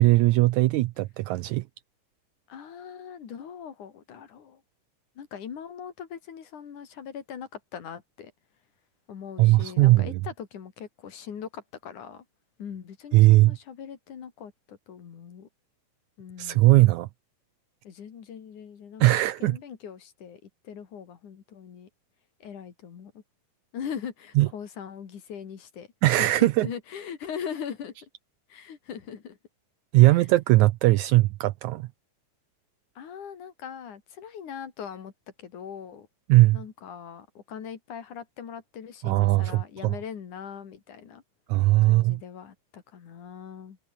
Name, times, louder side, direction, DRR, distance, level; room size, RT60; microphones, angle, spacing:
voice 1, 0.0-1.6 9.4-10.2 13.1-13.6 16.4-17.1 19.0-19.6 24.4-24.5 26.0-26.7 29.9-31.9 36.3-36.6 39.0-40.0 41.5-42.2, right 18 dB, 80° right, 1.8 m, -19 dB
voice 2, 2.5-4.6 5.2-8.3 9.1-12.2 12.6-15.5 16.2-16.8 17.8-19.1 19.4-21.9 22.4-23.2 23.7-25.9 26.2-28.1 28.5-29.4 30.0-30.2 33.0-35.1 35.4-36.1 36.5-41.2 41.8-43.8, left 8 dB, 65° left, 3.9 m, -40 dB
omnidirectional pair, 3.8 m